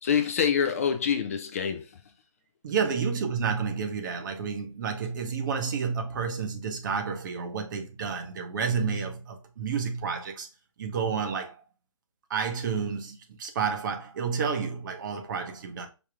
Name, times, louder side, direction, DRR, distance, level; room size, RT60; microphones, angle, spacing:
voice 1, 0.0-2.0, left 7 dB, 25° left, 0.4 m, -26 dB
voice 2, 2.6-10.5 10.8-11.6 12.3-15.9, right 6 dB, 35° right, 0.9 m, -30 dB
5.1 x 2.8 x 3.4 m
figure-of-eight pair, 145°, 17 cm